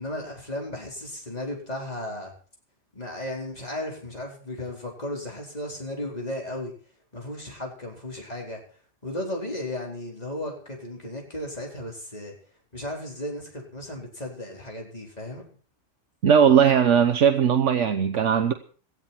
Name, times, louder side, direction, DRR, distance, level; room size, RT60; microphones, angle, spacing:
voice 1, 0.0-2.3 2.9-6.7 7.1-12.3 12.7-15.5, left 1 dB, 30° left, 4.6 m, -35 dB
voice 2, 16.2-18.5, right 7 dB, 70° right, 1.3 m, -19 dB
17.5 x 14.5 x 4.4 m
omnidirectional pair, 1.3 m